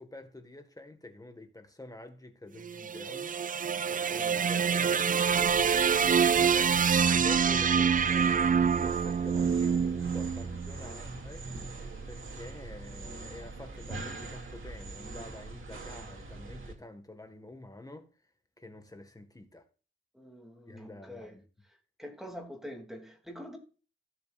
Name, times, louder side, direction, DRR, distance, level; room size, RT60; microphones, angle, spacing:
voice 1, 0.0-3.4 4.1-6.5 7.1-11.5 12.0-18.1 18.6-19.6 20.7-21.4, left 2 dB, 15° left, 1.7 m, -48 dB
sound 1, 2.6-10.9, right 7 dB, 40° right, 0.4 m, -26 dB
voice 2, 3.9-4.3 20.1-21.4 22.0-23.6, equal, ahead, 3.0 m, -45 dB
sound 2, 5.3-16.7, right 3 dB, 85° right, 2.6 m, -42 dB
16.5 x 6.8 x 2.5 m
wide cardioid pair, 120°, 21 cm